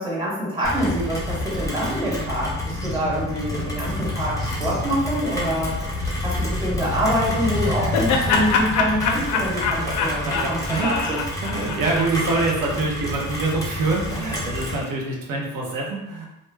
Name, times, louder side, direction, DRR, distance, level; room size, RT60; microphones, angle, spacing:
voice 1, 0.0-11.2, equal, 15° right, -6 dB, 0.9 m, -26 dB
Rain, 0.6-14.8, left 1 dB, 10° left, 0.6 m, -28 dB
Laughter, 7.3-12.5, left 5 dB, 65° left, 0.4 m, -25 dB
voice 2, 10.2-11.0 11.4-16.3, right 3 dB, 80° right, -2 dB, 0.7 m, -25 dB
2.2 x 2.0 x 3.2 m, 0.92 s
cardioid pair, 120°, 33 cm